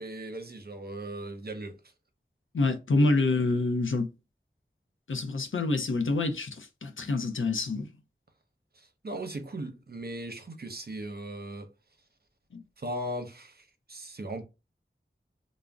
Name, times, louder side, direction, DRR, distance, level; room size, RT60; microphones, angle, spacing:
voice 1, 0.0-1.8 3.2-3.3 8.7-11.7 12.8-14.4, right 1 dB, 55° right, 0.6 m, -38 dB
voice 2, 2.5-4.1 5.1-7.9 12.5-12.6, left 3 dB, 85° left, 0.5 m, -27 dB
2.4 x 2.0 x 3.3 m
wide cardioid pair, 45°, 20 cm